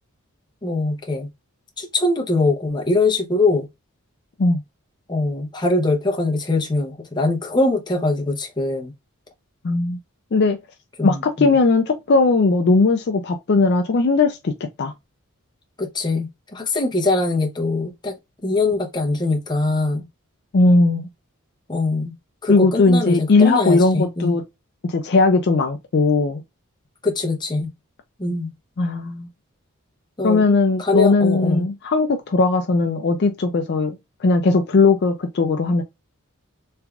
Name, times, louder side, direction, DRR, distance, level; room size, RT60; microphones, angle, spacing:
voice 1, 0.6-1.3 1.8-3.7 5.1-8.9 11.0-11.5 15.8-18.1 18.4-20.0 21.7-22.1 22.4-24.4 27.0-27.7 28.2-28.5 30.2-31.7, left 2 dB, 20° left, 0.7 m, -22 dB
voice 2, 9.6-10.0 10.3-10.6 11.0-14.5 14.8-14.9 20.5-21.1 22.5-24.4 24.8-26.4 28.8-29.3 30.2-35.8, left 3 dB, 50° left, 0.4 m, -18 dB
3.4 x 3.3 x 2.3 m
head